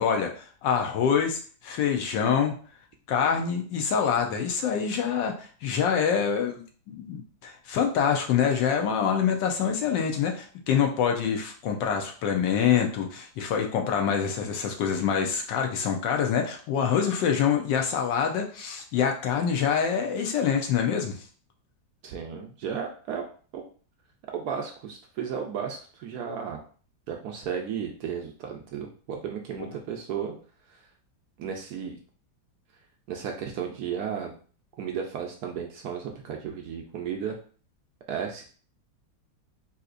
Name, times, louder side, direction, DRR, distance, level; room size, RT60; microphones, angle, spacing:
voice 1, 0.0-2.5 3.1-21.2, left 7 dB, 85° left, 3 dB, 1.3 m, -26 dB
voice 2, 22.0-23.3 23.5-23.6 24.3-26.6 27.1-30.3 30.7-30.8 31.4-32.0 33.1-34.3 34.8-37.3 38.1-38.5, right 7 dB, 70° right, 2 dB, 0.9 m, -34 dB
3.8 x 2.7 x 2.4 m, 0.42 s
omnidirectional pair, 2.0 m